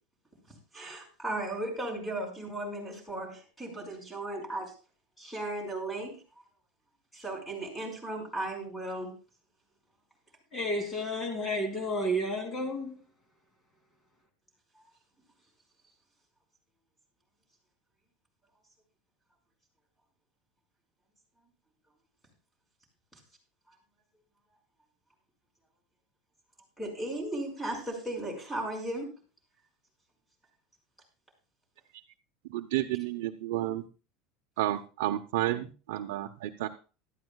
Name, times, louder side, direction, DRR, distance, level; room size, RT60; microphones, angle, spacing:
voice 1, 0.7-4.7 5.2-6.2 7.1-9.2 14.7-14.8 23.7-23.8 26.8-29.1, right 1 dB, 5° left, 5.1 m, -36 dB
voice 2, 10.5-12.9, equal, 20° left, 2.7 m, -31 dB
voice 3, 32.5-33.8 34.6-36.7, right 14 dB, 80° right, 0.7 m, -31 dB
17.5 x 12.5 x 2.3 m
supercardioid pair, 145°, 0 cm